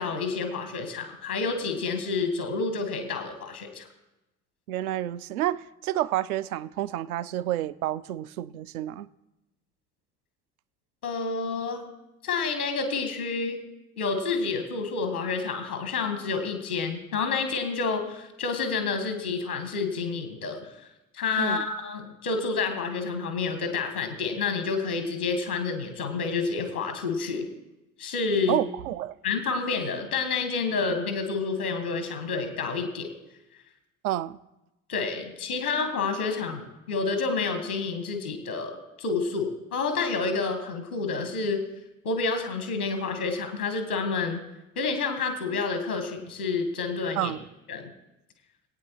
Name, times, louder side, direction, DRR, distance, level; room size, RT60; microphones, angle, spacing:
voice 1, 0.0-3.9 11.0-11.8 12.2-13.6 14.0-20.7 21.1-27.5 28.0-28.6 29.2-33.1 34.9-41.6 42.0-44.4 44.7-47.3 47.7-47.9, left 4 dB, 80° left, 1.5 m, -29 dB
voice 2, 4.7-9.1 21.4-21.6 28.5-29.1 34.0-34.4 47.2-47.4, right 13 dB, 75° right, 0.5 m, -29 dB
20.5 x 8.9 x 3.0 m
figure-of-eight pair, 50°, 44 cm